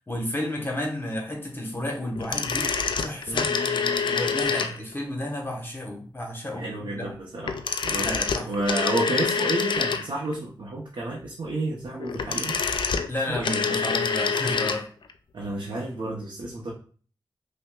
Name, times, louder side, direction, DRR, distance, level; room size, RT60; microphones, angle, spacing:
voice 1, 0.1-2.7 3.0-3.5 4.1-7.1 8.0-8.5 13.1-14.9, left 1 dB, 25° left, 0 dB, 0.9 m, -32 dB
sound 1, 2.2-5.0 7.4-10.3 12.0-14.8 15.1-15.2, left 5 dB, 70° left, 0.3 m, -26 dB
voice 2, 3.3-4.4 6.6-8.2 8.5-12.6 13.3-13.8 15.3-16.7, right 2 dB, 70° right, -2 dB, 0.6 m, -31 dB
5.5 x 2.1 x 2.2 m, 0.42 s
cardioid pair, 60°, 8 cm